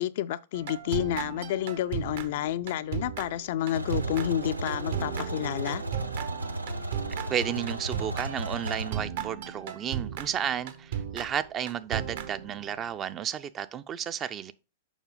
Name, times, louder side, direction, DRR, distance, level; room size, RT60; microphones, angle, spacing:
voice 1, 0.0-5.8, left 12 dB, 50° left, 0.4 m, -30 dB
sound 1, 0.5-12.9, right 9 dB, 55° right, 0.9 m, -36 dB
sound 2, 3.7-8.9, right 1 dB, 80° right, 0.7 m, -35 dB
voice 2, 7.3-14.5, right 9 dB, 25° right, 0.5 m, -32 dB
7.1 x 5.4 x 3.8 m
figure-of-eight pair, 100°, 0 cm